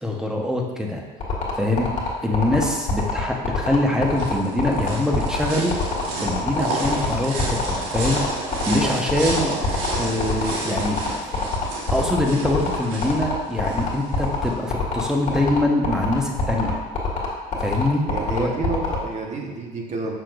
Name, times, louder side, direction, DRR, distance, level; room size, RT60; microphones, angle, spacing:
voice 1, 0.0-1.0 1.6-1.9 2.2-5.7 6.2-8.2 8.7-9.5 9.9-11.0 11.9-16.8 17.6-18.5, left 1 dB, 5° right, -1 dB, 1.1 m, -23 dB
sound 1, 1.2-19.0, left 4 dB, 45° left, 1.7 m, -25 dB
sound 2, 3.7-14.5, right 2 dB, 85° right, 1.4 m, -31 dB
voice 2, 18.0-20.2, right 3 dB, 40° right, 0 dB, 1.3 m, -30 dB
6.4 x 6.0 x 2.6 m, 1.4 s
supercardioid pair, 85°, 17 cm